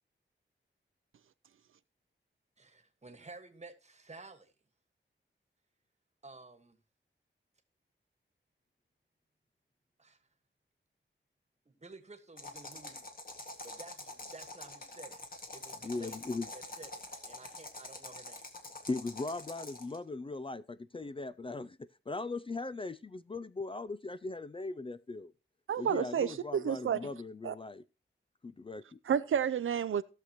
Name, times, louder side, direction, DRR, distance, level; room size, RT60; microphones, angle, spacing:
voice 1, 2.6-4.5 6.2-6.8 10.0-10.2 11.6-13.0 13.6-15.2 15.5-17.0 17.3-18.4, right 3 dB, 35° right, 1.4 m, -52 dB
sound 1, 12.4-20.0, left 2 dB, 45° left, 1.9 m, -46 dB
voice 2, 15.8-16.5 18.9-25.3 25.8-27.8 28.4-29.0, left 3 dB, 25° left, 0.4 m, -39 dB
voice 3, 25.7-27.0 27.4-27.5 29.1-30.0, right 8 dB, 90° right, 0.5 m, -30 dB
17.0 x 6.6 x 3.0 m
wide cardioid pair, 105°, 20 cm